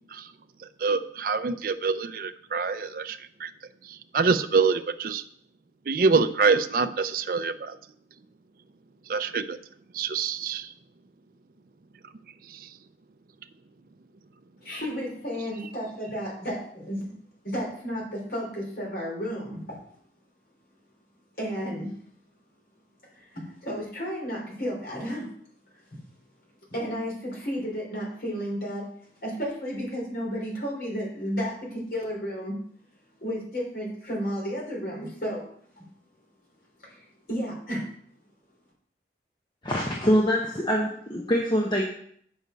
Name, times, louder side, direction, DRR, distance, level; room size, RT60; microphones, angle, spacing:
voice 1, 0.8-3.5 3.8-5.2 5.9-7.8 9.1-9.6 9.9-10.7 12.5-12.7, right 4 dB, 50° right, 10 dB, 0.5 m, -26 dB
voice 2, 14.6-17.1 17.4-19.8 21.4-21.9 23.2-25.3 25.9-26.0 26.7-28.9 29.2-32.6 33.2-35.4 35.8-35.9 36.8-37.8, equal, 60° left, -3 dB, 3.4 m, -32 dB
voice 3, 39.6-41.8, equal, 25° left, -1 dB, 0.9 m, -24 dB
8.0 x 5.7 x 5.1 m, 0.63 s
head